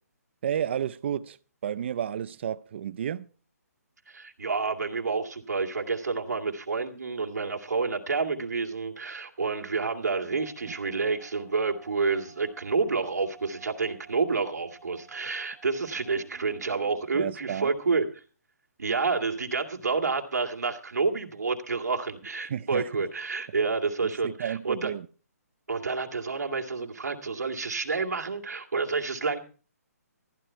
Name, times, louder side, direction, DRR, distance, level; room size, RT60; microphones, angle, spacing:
voice 1, 0.4-1.4 1.6-3.3 10.3-10.4 10.7-10.8 17.1-17.7 22.5-22.9 24.0-25.1, right 9 dB, 45° right, 0.6 m, -31 dB
voice 2, 4.1-18.1 18.8-24.9 25.7-29.4, right 4 dB, 90° right, 2.5 m, -29 dB
sound 1, 9.4-17.8, right 5 dB, 10° right, 5.5 m, -55 dB
14.5 x 11.5 x 4.5 m
hypercardioid pair, 160°, 9 cm